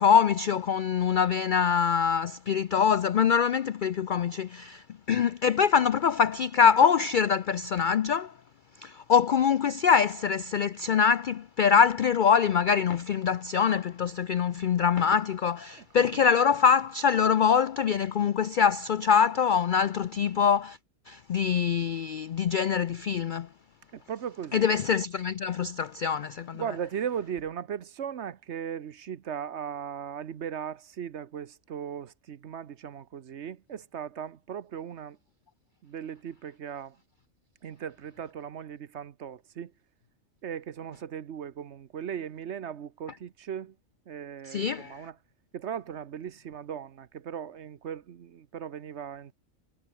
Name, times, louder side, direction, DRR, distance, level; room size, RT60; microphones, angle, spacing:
voice 1, 0.0-8.3 8.8-20.8 21.1-23.5 24.5-26.6 44.5-45.0, left 7 dB, 75° left, 0.4 m, -24 dB
voice 2, 15.8-16.2 23.9-24.8 26.5-35.2 35.8-37.0 37.6-39.7 40.4-43.8 44.1-45.2 45.5-49.3, right 8 dB, 55° right, 1.1 m, -38 dB
omnidirectional pair, 1.5 m